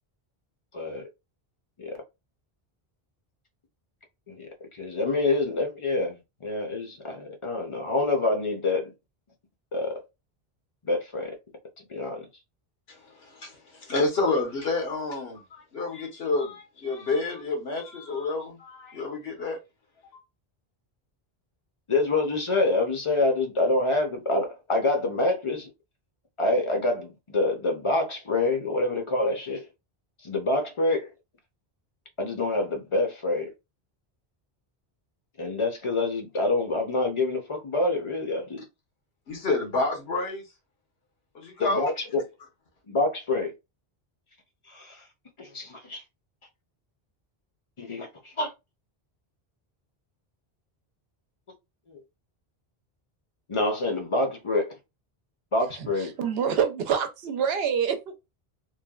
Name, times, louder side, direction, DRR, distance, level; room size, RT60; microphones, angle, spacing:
voice 1, 0.7-1.1 1.8-2.0 4.3-4.5 4.8-8.9 9.7-10.0 10.8-11.4 11.9-12.3 21.9-25.7 26.4-29.6 30.2-31.1 32.2-33.5 35.4-38.6 41.6-42.2 42.9-43.5 44.7-45.0 45.4-46.0 47.8-48.5 51.9-52.0 53.5-54.8 55.5-56.1, left 2 dB, 35° left, 0.6 m, -26 dB
voice 2, 12.9-19.6 20.1-20.2 39.3-40.4 41.3-41.9, left 3 dB, 75° left, 1.2 m, -29 dB
voice 3, 55.6-58.2, right 7 dB, 80° right, 0.8 m, -27 dB
3.2 x 2.1 x 2.3 m
omnidirectional pair, 1.0 m